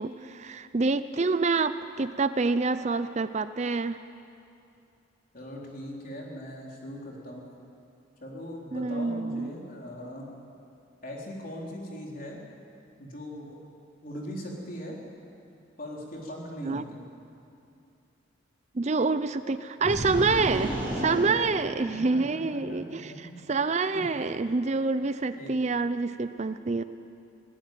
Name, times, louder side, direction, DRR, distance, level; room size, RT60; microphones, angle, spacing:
voice 1, 0.0-4.0 8.7-9.5 16.6-16.9 18.7-26.8, right 3 dB, 35° right, 12 dB, 0.5 m, -27 dB
voice 2, 5.3-7.4 8.2-10.3 11.0-12.4 13.0-13.6 14.0-15.0 15.8-17.0 21.9-23.4 23.9-24.0 25.3-25.6, equal, 45° left, -2 dB, 4.0 m, -40 dB
sound 1, 19.8-22.3, equal, 10° right, 7.4 m, -33 dB
19.5 x 19.0 x 9.2 m, 2.6 s
head